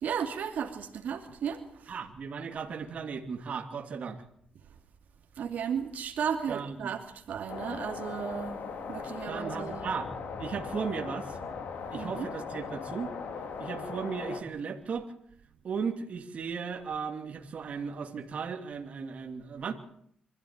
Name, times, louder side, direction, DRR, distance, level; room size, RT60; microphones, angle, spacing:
voice 1, 0.0-1.9 5.4-8.6 8.9-9.9 11.9-12.3, right 7 dB, 70° right, 2.6 m, -34 dB
voice 2, 1.9-4.2 6.5-6.9 9.3-10.1 10.4-11.5 11.9-13.1 13.6-15.1 15.6-19.7, right 6 dB, 50° right, 2.8 m, -36 dB
sound 1, 7.5-14.4, left 5 dB, 70° left, 2.9 m, -39 dB
25.0 x 14.5 x 9.0 m
cardioid pair, 135°, 3 cm